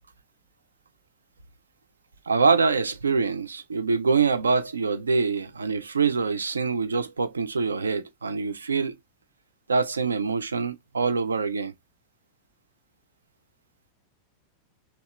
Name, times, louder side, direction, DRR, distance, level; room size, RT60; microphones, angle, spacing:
voice 1, 2.3-8.9 9.7-11.7, right 4 dB, 75° right, 0.4 m, -25 dB
2.9 x 2.8 x 3.0 m
figure-of-eight pair, 90°, 0 cm